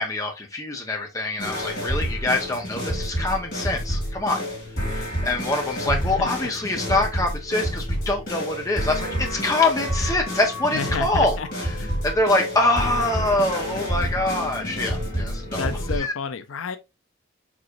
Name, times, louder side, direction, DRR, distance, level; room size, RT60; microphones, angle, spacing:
voice 1, 0.0-4.4 4.8-11.4 11.6-11.7 12.0-15.7 16.0-16.1, left 2 dB, 15° left, 1.0 m, -24 dB
sound 1, 1.4-16.0, equal, 40° left, 2.6 m, -29 dB
voice 2, 5.8-6.3 10.7-11.5 11.8-12.0 15.5-16.8, left 5 dB, 75° left, 0.5 m, -31 dB
4.7 x 3.9 x 2.5 m
head